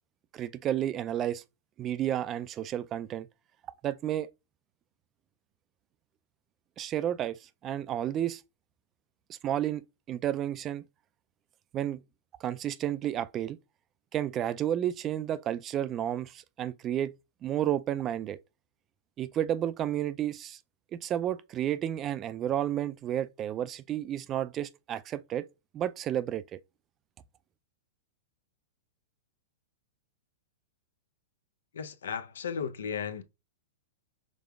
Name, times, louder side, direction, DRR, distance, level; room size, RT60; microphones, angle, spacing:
voice 1, 0.3-1.4 1.8-3.3 3.8-4.3 6.8-8.4 9.3-10.8 11.7-12.0 12.4-13.6 14.1-17.1 17.4-18.4 19.2-20.6 20.9-25.5 25.7-26.6, right 11 dB, 30° right, 0.3 m, -31 dB
voice 2, 31.7-33.2, left 7 dB, 75° left, 0.5 m, -35 dB
5.1 x 3.5 x 2.3 m
hypercardioid pair, 115°, 0 cm